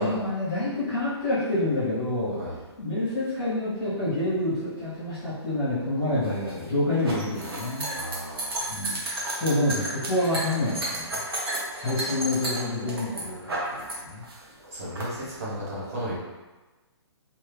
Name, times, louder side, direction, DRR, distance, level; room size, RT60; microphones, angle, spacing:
voice 1, 0.0-2.4 2.8-7.8 8.7-9.0 9.4-11.2 11.7-14.2, left 1 dB, 5° left, -16 dB, 1.1 m, -27 dB
sound 1, 6.2-14.0 14.2-15.0, right 1 dB, 55° right, 1.0 m, -32 dB
voice 2, 7.9-8.7 14.7-16.1, equal, 30° right, -7 dB, 1.0 m, -33 dB
2.8 x 2.7 x 3.2 m, 1.2 s
hypercardioid pair, 180°, 15 cm